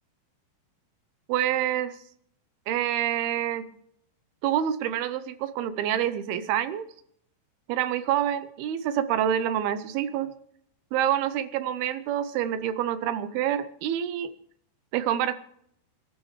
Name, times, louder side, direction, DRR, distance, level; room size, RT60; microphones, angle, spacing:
voice 1, 1.3-1.9 2.7-3.6 4.4-6.9 7.7-10.3 10.9-14.3 14.9-15.3, right 11 dB, 80° right, 13 dB, 2.4 m, -27 dB
27.5 x 12.0 x 3.2 m, 0.69 s
omnidirectional pair, 5.0 m